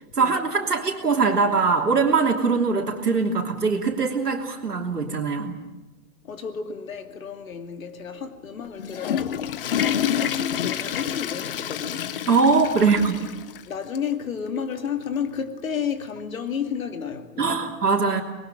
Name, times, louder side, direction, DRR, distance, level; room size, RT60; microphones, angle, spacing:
voice 1, 0.1-5.6 12.3-13.2 17.4-18.2, right 4 dB, 70° right, 3.2 m, -22 dB
voice 2, 6.2-9.4 9.7-12.2 12.8-13.0 13.7-17.7, left 7 dB, 55° left, 2.6 m, -32 dB
Water / Toilet flush, 8.6-13.6 14.0-14.1 14.8-14.9 16.2-16.3, left 9 dB, 35° left, 0.8 m, -28 dB
25.0 x 21.5 x 9.0 m
figure-of-eight pair, 120°, 48 cm